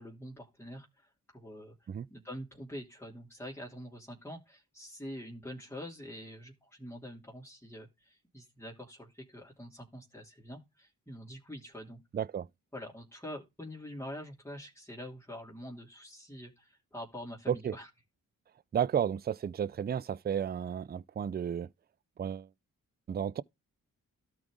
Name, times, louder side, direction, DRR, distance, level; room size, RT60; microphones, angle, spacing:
voice 1, 0.0-12.0 12.7-17.9, equal, 5° left, 3.0 m, -45 dB
voice 2, 12.1-12.5 17.5-17.8 18.7-21.7 22.2-22.5 23.1-23.4, right 8 dB, 25° right, 0.4 m, -32 dB
13.0 x 4.8 x 3.7 m
supercardioid pair, 45°, 36 cm